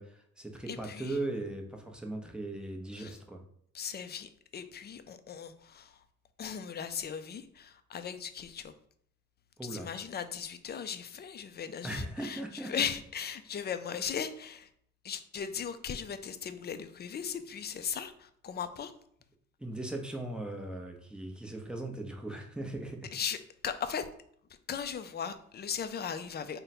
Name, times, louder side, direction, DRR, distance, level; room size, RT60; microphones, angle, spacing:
voice 1, 0.0-3.4 9.6-9.9 11.8-12.7 19.6-23.1, right 2 dB, 5° right, 2 dB, 0.7 m, -38 dB
voice 2, 0.7-1.2 2.9-3.2 3.7-6.0 6.4-8.7 9.6-14.7 15.0-18.9 23.1-24.1 24.7-26.6, left 7 dB, 35° left, 11 dB, 0.4 m, -38 dB
3.7 x 2.2 x 4.2 m, 0.66 s
cardioid pair, 90°, 30 cm